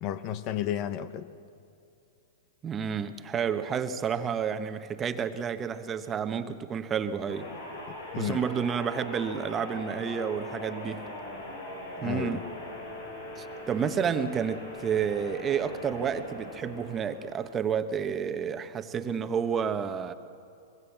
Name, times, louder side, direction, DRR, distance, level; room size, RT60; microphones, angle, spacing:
voice 1, 0.0-1.3 7.9-8.4 12.0-12.4, left 11 dB, 45° left, 1.0 m, -32 dB
voice 2, 2.6-7.5 8.2-11.0 12.0-12.5 13.4-20.1, right 7 dB, 25° right, 1.2 m, -30 dB
sound 1, 7.3-17.6, left 1 dB, 80° left, 7.2 m, -41 dB
25.0 x 22.5 x 7.3 m
hypercardioid pair, 110°, 0 cm